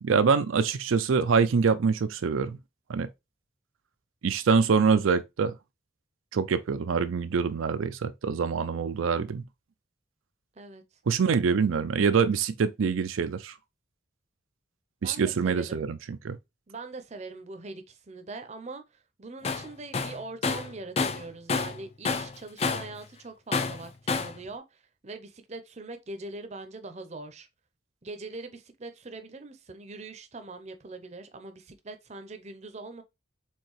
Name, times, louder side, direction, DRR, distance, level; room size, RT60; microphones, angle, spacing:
voice 1, 0.0-2.6 2.9-3.1 4.2-5.5 6.3-9.4 11.1-13.5 15.0-16.0 16.2-16.4, right 5 dB, 85° right, 0.4 m, -25 dB
voice 2, 15.0-15.8 16.7-27.5 28.0-33.0, right 3 dB, 35° right, 0.6 m, -42 dB
Tools, 19.4-19.7 19.9-21.8 22.0-23.0 23.5-24.4, left 4 dB, 30° left, 0.4 m, -29 dB
4.4 x 3.7 x 3.1 m
head